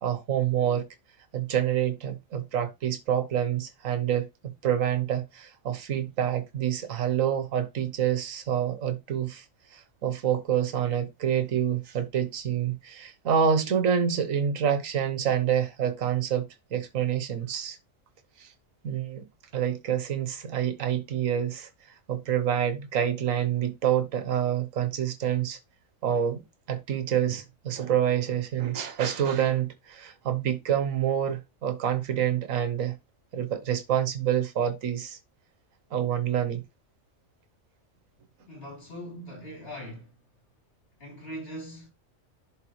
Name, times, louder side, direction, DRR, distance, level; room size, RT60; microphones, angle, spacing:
voice 1, 0.0-0.9 1.3-9.4 9.7-17.8 18.4-18.5 18.8-19.2 19.5-25.6 26.0-26.4 26.7-32.9 33.3-35.2 35.9-36.6, right 9 dB, 75° right, 1.4 m, -27 dB
voice 2, 38.5-40.1 41.0-41.9, equal, 45° left, 3.6 m, -41 dB
11.0 x 3.8 x 3.1 m
omnidirectional pair, 1.4 m